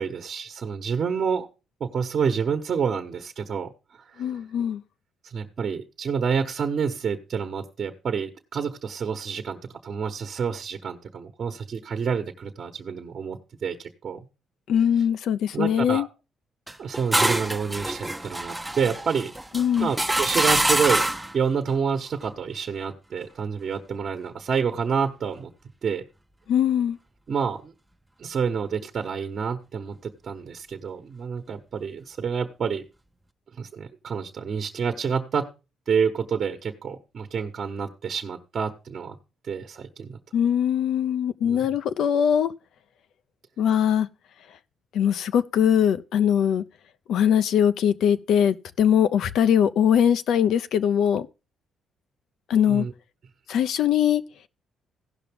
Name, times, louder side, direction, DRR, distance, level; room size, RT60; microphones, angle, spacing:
voice 1, 0.0-1.5 1.8-4.3 5.2-13.8 14.0-14.2 15.5-16.1 16.8-19.3 19.8-21.1 21.3-25.5 25.8-26.0 27.3-27.7 28.2-32.8 33.6-35.5 35.9-39.2 39.4-40.2 41.4-41.7 52.7-52.9, right 6 dB, 50° right, 1.2 m, -28 dB
voice 2, 4.2-4.8 14.7-16.1 19.5-19.9 26.5-27.0 40.3-42.5 43.6-44.1 44.9-46.6 47.1-51.3 52.5-52.9 53.5-54.2, left 9 dB, 75° left, 0.6 m, -21 dB
sound 1, 16.7-21.4, right 1 dB, 10° right, 0.6 m, -25 dB
16.5 x 5.8 x 3.5 m
cardioid pair, 90°, 0 cm